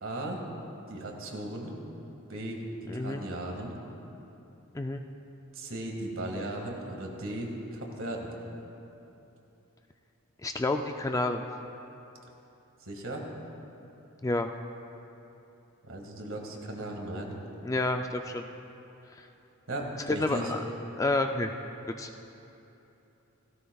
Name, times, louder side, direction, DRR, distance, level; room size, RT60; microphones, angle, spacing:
voice 1, 0.0-0.4 0.9-1.7 2.3-2.6 2.9-3.8 5.5-8.3 12.9-13.2 15.8-17.4 19.7-20.5, right 1 dB, 60° right, 1 dB, 1.9 m, -36 dB
voice 2, 2.9-3.2 4.7-5.0 10.4-11.4 14.2-14.5 17.6-18.4 20.1-20.6 21.0-21.5 22.0-22.1, left 2 dB, 15° left, 5 dB, 0.3 m, -29 dB
16.5 x 16.0 x 2.3 m, 2.9 s
head